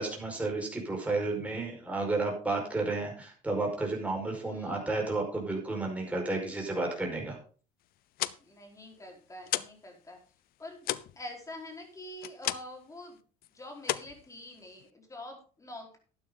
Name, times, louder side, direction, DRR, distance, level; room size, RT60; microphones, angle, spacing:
voice 1, 0.0-7.4, right 3 dB, 10° right, -1 dB, 5.2 m, -32 dB
voice 2, 4.5-4.8 8.4-10.2 10.6-13.2 13.5-16.0, left 1 dB, 20° left, 2 dB, 4.6 m, -46 dB
sound 1, 8.0-9.9 10.2-12.9 13.2-13.5 13.8-14.9, left 14 dB, 60° left, 0.7 m, -35 dB
12.0 x 9.7 x 4.0 m, 0.38 s
supercardioid pair, 105°, 18 cm